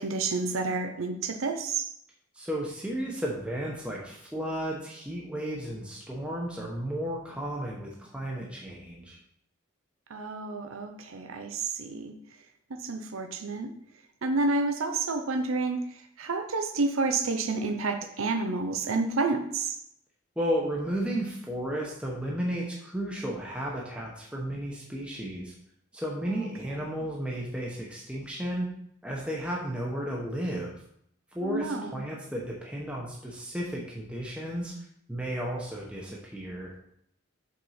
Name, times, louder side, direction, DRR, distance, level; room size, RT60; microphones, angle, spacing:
voice 1, 0.0-1.9 10.1-12.1 12.8-13.7 14.2-15.8 16.2-19.8 26.3-26.5 31.4-32.0, right 3 dB, 80° right, 6 dB, 0.7 m, -29 dB
voice 2, 2.3-9.2 20.4-25.5 25.9-28.7 29.0-30.7 31.3-34.7 35.1-36.7, equal, 5° right, -3 dB, 0.9 m, -33 dB
5.6 x 4.4 x 5.7 m, 0.71 s
head